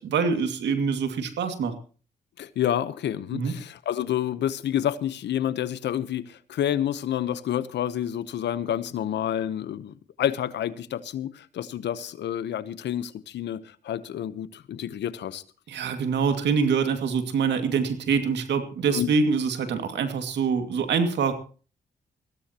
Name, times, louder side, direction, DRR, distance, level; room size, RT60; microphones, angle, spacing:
voice 1, 0.0-1.7 3.3-3.5 15.7-21.3, right 5 dB, 80° right, 2.3 m, -25 dB
voice 2, 2.4-15.4 18.9-19.1, left 10 dB, 80° left, 1.0 m, -29 dB
21.5 x 16.0 x 3.0 m
supercardioid pair, 55°, 18 cm